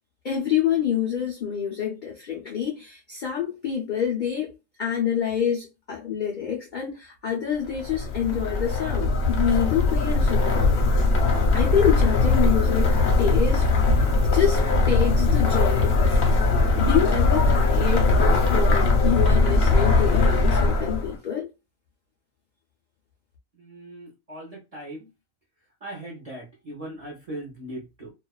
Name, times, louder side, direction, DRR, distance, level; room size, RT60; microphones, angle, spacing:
voice 1, 0.2-10.8 11.5-13.7 14.2-16.4 16.8-21.5, left 8 dB, 80° left, 0.4 m, -27 dB
sound 1, 7.7-21.2, left 3 dB, 55° left, 0.8 m, -20 dB
voice 2, 23.6-25.1 25.8-28.1, right 1 dB, 40° right, 0.5 m, -39 dB
2.3 x 2.3 x 2.2 m
omnidirectional pair, 1.6 m